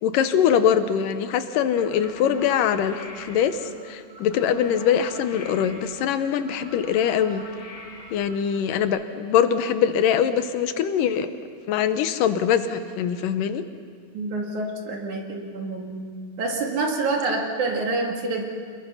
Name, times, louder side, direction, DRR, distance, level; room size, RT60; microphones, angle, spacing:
voice 1, 0.0-3.6 3.9-7.4 8.1-11.3 11.7-13.6, left 8 dB, 90° left, 10 dB, 2.6 m, -22 dB
sound 1, 1.7-8.8, equal, 50° left, 3.8 m, -42 dB
voice 2, 14.1-16.0 16.4-18.4, right 3 dB, 65° right, 1 dB, 3.6 m, -27 dB
27.5 x 21.5 x 5.7 m, 2.2 s
omnidirectional pair, 3.7 m